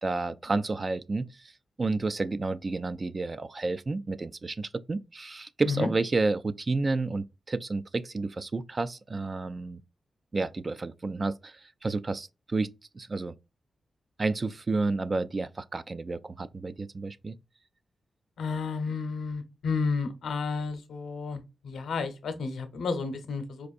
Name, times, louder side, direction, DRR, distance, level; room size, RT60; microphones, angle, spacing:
voice 1, 0.0-1.5 1.8-9.8 10.3-13.3 14.2-17.4, right 3 dB, 35° right, 0.3 m, -31 dB
voice 2, 18.4-23.7, left 4 dB, 90° left, 0.8 m, -31 dB
4.6 x 2.5 x 2.4 m
wide cardioid pair, 105°, 0 cm